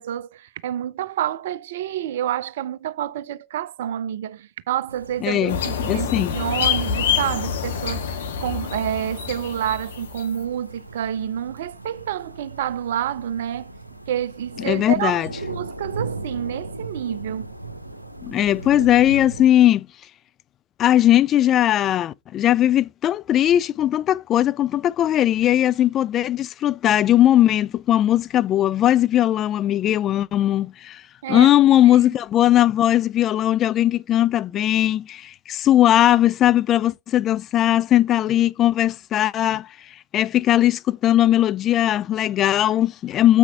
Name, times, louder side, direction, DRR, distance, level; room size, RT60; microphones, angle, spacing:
voice 1, 0.0-13.7 14.1-17.5 31.2-31.5, right 10 dB, 55° right, 0.6 m, -28 dB
sound 1, 4.9-19.5, right 2 dB, 85° right, 0.8 m, -38 dB
voice 2, 5.2-6.4 14.6-15.3 18.2-19.9 20.8-31.0 31.3-39.7 40.1-43.4, left 12 dB, 30° left, 0.4 m, -19 dB
sound 2, 5.5-10.4, left 7 dB, 60° left, 1.4 m, -26 dB
7.6 x 5.8 x 3.6 m
figure-of-eight pair, 90°, 0 cm